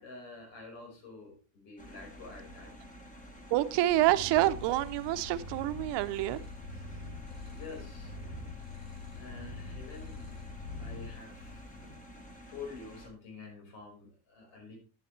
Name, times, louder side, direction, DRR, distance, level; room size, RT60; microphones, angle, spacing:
voice 1, 0.0-2.7 7.5-8.1 9.2-10.4 10.7-11.6 12.5-14.8, left 4 dB, 85° left, 2 dB, 5.3 m, -48 dB
sound 1, 1.8-13.1, equal, 15° left, 1.5 m, -50 dB
voice 2, 3.5-6.4, right 15 dB, 65° right, 11 dB, 0.9 m, -27 dB
Purr, 3.9-11.9, left 3 dB, 55° left, 6.7 m, -44 dB
11.0 x 10.0 x 3.3 m, 0.33 s
cardioid pair, 165°, 45 cm